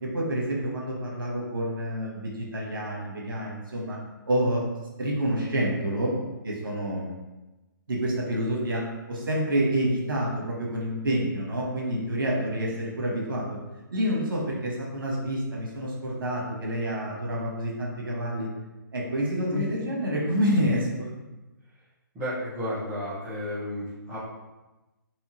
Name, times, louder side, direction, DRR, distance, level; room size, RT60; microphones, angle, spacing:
voice 1, 0.0-4.0 4.2-4.6 5.0-6.2 6.4-7.1 7.9-13.6 13.9-18.5 18.9-21.1, right 1 dB, 80° right, -2 dB, 1.1 m, -28 dB
voice 2, 22.1-24.2, left 1 dB, 25° right, -14 dB, 1.5 m, -32 dB
3.5 x 2.9 x 2.9 m, 1.1 s
hypercardioid pair, 145°, 11 cm